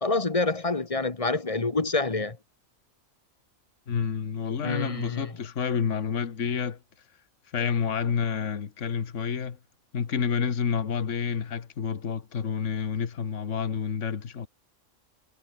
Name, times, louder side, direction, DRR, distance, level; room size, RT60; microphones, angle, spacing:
voice 1, 0.0-2.4 4.6-5.3, left 3 dB, 25° left, 1.3 m, -27 dB
voice 2, 3.9-6.8 7.5-9.6 9.9-14.5, left 6 dB, 65° left, 1.8 m, -29 dB
omnidirectional pair, 1.4 m